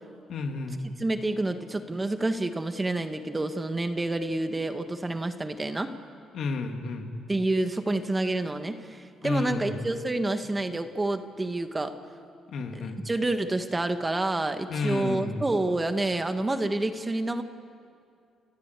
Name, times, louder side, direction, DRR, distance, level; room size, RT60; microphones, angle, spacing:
voice 1, 0.3-0.8 6.3-7.1 9.2-9.8 12.5-13.0 14.7-15.5, left 3 dB, 65° left, 4 dB, 2.6 m, -31 dB
voice 2, 1.0-5.9 7.3-12.0 12.7-17.4, right 2 dB, 20° right, 8 dB, 1.5 m, -28 dB
29.5 x 14.5 x 8.3 m, 2.4 s
cardioid pair, 75°, 0 cm